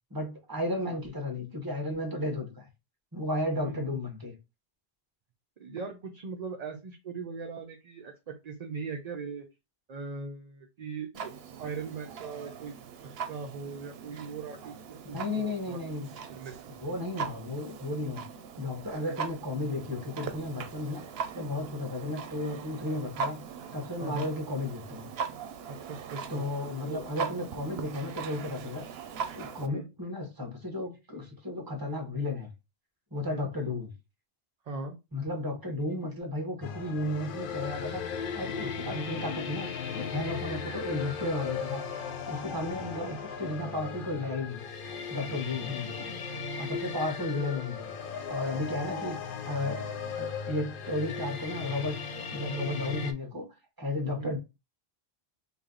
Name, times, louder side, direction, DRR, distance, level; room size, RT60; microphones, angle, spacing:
voice 1, 0.1-2.6 3.1-4.3 15.1-16.1 16.8-18.2 18.6-21.0 21.3-23.4 23.7-25.1 26.3-28.9 29.3-32.5 33.1-33.9 35.1-41.8 42.3-44.6 45.1-46.1 46.6-47.9 48.3-49.2 49.5-49.8 50.2-52.0 52.3-54.4, left 2 dB, 20° right, 1.0 m, -34 dB
voice 2, 3.6-4.0 5.6-9.5 9.9-11.3 11.6-12.8 13.3-15.8 16.3-16.5 22.9-23.0 24.0-24.3 25.7-26.5 26.8-27.0 29.6-29.9 33.3-33.5 34.7-35.0 38.8-39.1 40.5-40.6 43.0-43.2 46.1-46.2 47.3-47.5 48.5-48.6 48.9-49.1 54.2-54.4, right 4 dB, 50° right, 0.6 m, -40 dB
Clock, 11.1-29.7, right 6 dB, 80° right, 0.8 m, -40 dB
sound 1, 36.6-53.1, left 6 dB, 65° left, 0.7 m, -37 dB
3.2 x 2.6 x 3.7 m
omnidirectional pair, 1.0 m